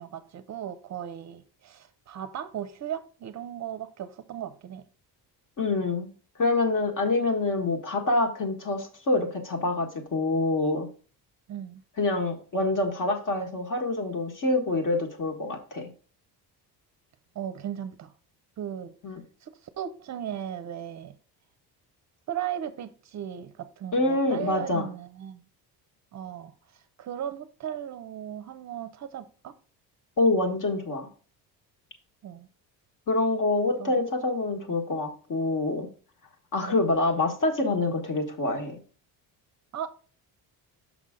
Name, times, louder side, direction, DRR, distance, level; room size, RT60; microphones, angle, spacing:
voice 1, 0.0-4.8 11.5-11.8 17.3-18.1 18.6-18.9 19.4-21.2 22.3-25.4 26.1-26.5 27.0-29.6 32.2-32.5 33.8-33.9 34.7-34.8 36.6-36.8 39.7-39.9, right 10 dB, 45° right, 0.6 m, -36 dB
voice 2, 5.6-6.1 6.4-10.9 12.0-15.9 19.0-19.2 23.9-24.9 30.2-31.1 33.1-35.9 36.5-38.8, left 2 dB, 50° left, 1.6 m, -26 dB
6.0 x 5.5 x 3.7 m
cardioid pair, 130°, 40 cm